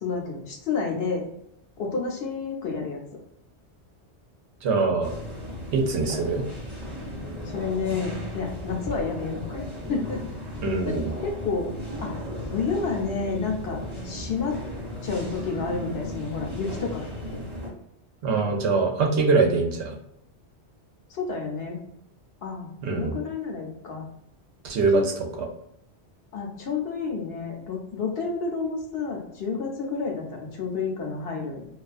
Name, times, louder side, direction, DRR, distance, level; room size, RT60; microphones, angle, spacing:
voice 1, 0.0-1.2 1.8-3.0 7.5-10.2 10.9-11.7 12.0-12.2 12.5-13.8 14.0-14.6 15.0-17.4 21.1-21.8 22.4-24.1 24.9-25.0 26.3-31.7, left 4 dB, 65° left, 1 dB, 0.8 m, -30 dB
voice 2, 4.6-5.1 5.7-6.4 10.6-11.1 18.2-19.9 22.8-23.2 24.6-25.3, right 4 dB, 75° right, 2 dB, 0.8 m, -23 dB
sound 1, 5.0-17.7, equal, 10° right, 0.7 m, -35 dB
2.3 x 2.3 x 2.4 m, 0.77 s
omnidirectional pair, 1.1 m